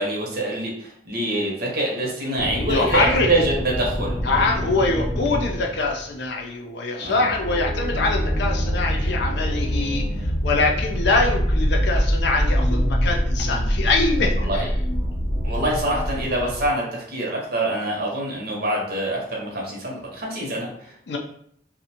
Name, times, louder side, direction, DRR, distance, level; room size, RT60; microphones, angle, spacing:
voice 1, 0.0-4.2 7.0-7.3 14.4-14.7 15.4-21.2, right 1 dB, 60° right, -2 dB, 0.8 m, -25 dB
sound 1, 2.4-6.0 7.0-16.7, equal, 20° left, 0.8 m, -24 dB
voice 2, 2.7-3.3 4.2-10.0 10.4-14.6 21.1-21.2, left 3 dB, 70° left, 1 dB, 0.4 m, -23 dB
2.5 x 2.1 x 2.8 m, 0.67 s
head